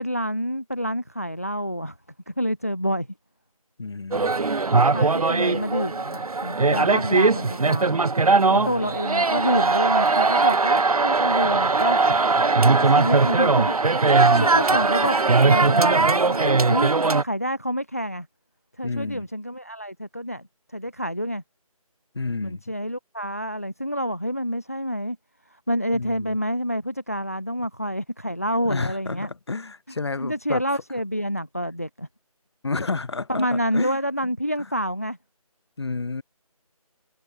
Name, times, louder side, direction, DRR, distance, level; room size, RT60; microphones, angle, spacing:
voice 1, 0.0-2.0 2.3-3.1 4.9-8.1 8.5-12.0 12.8-13.8 14.1-16.9 17.2-18.3 18.8-20.5 20.7-21.4 22.4-25.2 25.5-29.3 30.2-32.1 33.3-35.2, equal, 25° left, 0.4 m, -28 dB
voice 2, 3.8-4.3 8.5-8.8 12.1-12.4 12.8-12.9 14.1-14.8 15.1-15.2 18.8-19.3 22.1-22.6 25.9-26.4 28.6-30.6 32.6-34.0 35.8-36.2, left 3 dB, 45° left, 4.3 m, -31 dB
sound 1, 4.1-17.2, right 3 dB, 75° right, 1.0 m, -20 dB
figure-of-eight pair, 170°, 19 cm